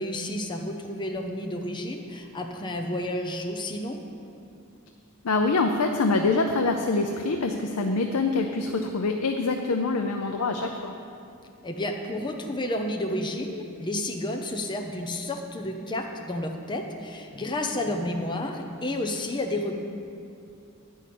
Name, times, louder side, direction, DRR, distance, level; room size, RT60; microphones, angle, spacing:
voice 1, 0.0-4.0 11.6-19.8, left 1 dB, 20° left, 2 dB, 0.7 m, -31 dB
voice 2, 5.2-10.9, left 3 dB, 80° left, 4 dB, 0.6 m, -25 dB
10.5 x 5.5 x 8.5 m, 2.6 s
head